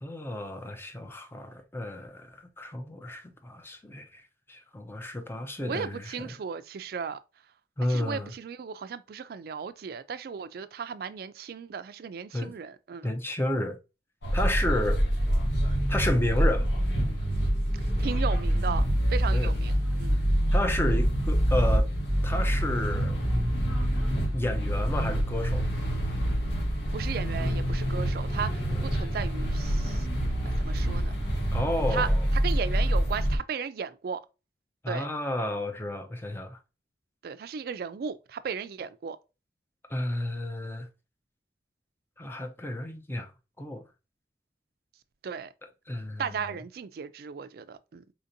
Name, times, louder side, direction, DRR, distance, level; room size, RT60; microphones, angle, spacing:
voice 1, 0.0-4.2 4.5-6.3 7.8-8.3 12.3-12.5 13.0-13.8 14.3-15.0 15.9-16.7 19.3-19.5 20.5-21.9 22.2-23.2 24.3-25.7 28.7-28.8 31.5-32.2 34.8-36.6 39.9-40.9 42.2-43.3 43.6-43.8 45.9-46.6, left 1 dB, 15° left, 0.5 m, -31 dB
voice 2, 5.6-7.2 7.9-13.1 18.0-18.8 19.1-20.2 26.9-30.1 30.4-31.1 31.9-32.1 32.4-34.2 34.9-35.1 37.2-39.2 45.2-45.5 46.2-48.0, right 6 dB, 60° right, 0.3 m, -35 dB
sound 1, 14.2-33.4, equal, 75° left, 1.3 m, -26 dB
4.2 x 2.6 x 2.6 m
head